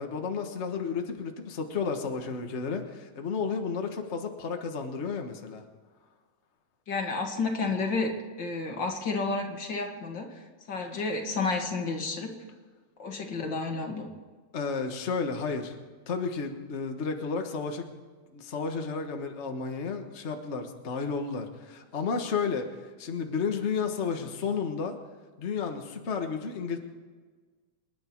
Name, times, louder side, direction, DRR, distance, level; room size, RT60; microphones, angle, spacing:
voice 1, 0.0-5.6 14.5-15.8 16.1-17.9 18.3-25.0 25.4-26.8, left 5 dB, 85° left, 4 dB, 0.6 m, -32 dB
voice 2, 6.9-8.1 8.4-12.3 13.0-14.1, left 3 dB, 40° left, 2 dB, 2.4 m, -31 dB
27.5 x 10.5 x 4.6 m, 1.4 s
omnidirectional pair, 3.6 m